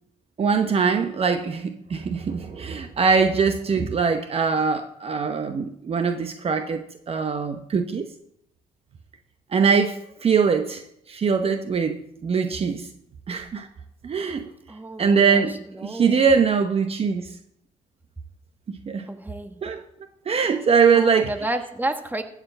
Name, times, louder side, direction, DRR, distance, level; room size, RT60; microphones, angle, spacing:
voice 1, 0.4-8.1 9.5-10.8 11.1-12.9 13.3-13.7 14.0-14.5 15.0-17.3 18.9-19.1 19.6-19.8 20.3-21.3, right 5 dB, 45° right, 7 dB, 0.9 m, -22 dB
voice 2, 14.7-16.4 19.1-19.6 20.9-22.2, right 2 dB, 15° right, 6 dB, 1.4 m, -31 dB
14.5 x 5.0 x 7.7 m, 0.77 s
cardioid pair, 75°, 14 cm